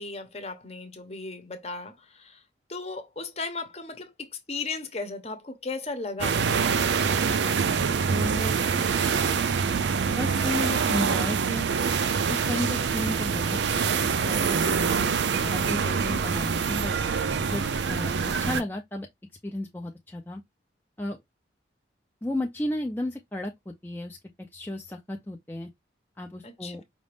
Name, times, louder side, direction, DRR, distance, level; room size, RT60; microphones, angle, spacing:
voice 1, 0.0-2.4 2.7-6.4 26.4-26.8, left 3 dB, 35° left, 0.8 m, -36 dB
sound 1, 6.2-18.6, right 5 dB, 70° right, 0.4 m, -25 dB
voice 2, 8.1-8.5 10.2-11.7 12.3-14.8 15.3-16.9 17.5-18.1 18.4-19.1 19.4-20.4 21.0-21.2 22.2-25.7 26.2-26.8, left 1 dB, 10° left, 0.4 m, -33 dB
5.1 x 2.5 x 3.3 m
head